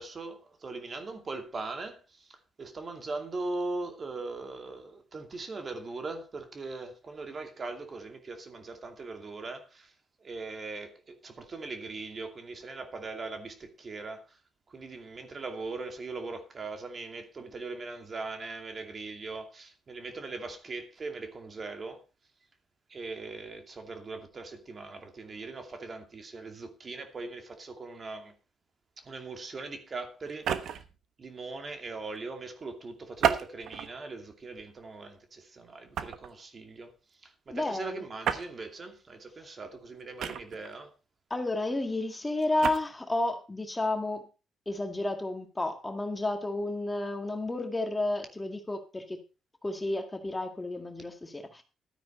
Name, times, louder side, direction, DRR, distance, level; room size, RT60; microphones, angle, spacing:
voice 1, 0.0-9.9 10.2-14.4 14.7-22.0 22.9-28.3 29.0-30.8 31.2-36.9 37.2-40.9, right 3 dB, 40° right, 2.5 m, -40 dB
sound 1, 30.3-31.0 33.2-34.0 34.6-34.8 36.0-36.3 38.2-38.5 40.2-40.7 42.4-42.8, right 9 dB, 75° right, 1.1 m, -30 dB
voice 2, 37.5-38.0 41.3-44.3 44.7-49.2 49.6-51.6, left 2 dB, 15° left, 1.9 m, -31 dB
12.5 x 9.4 x 4.2 m
cardioid pair, 90°, 0 cm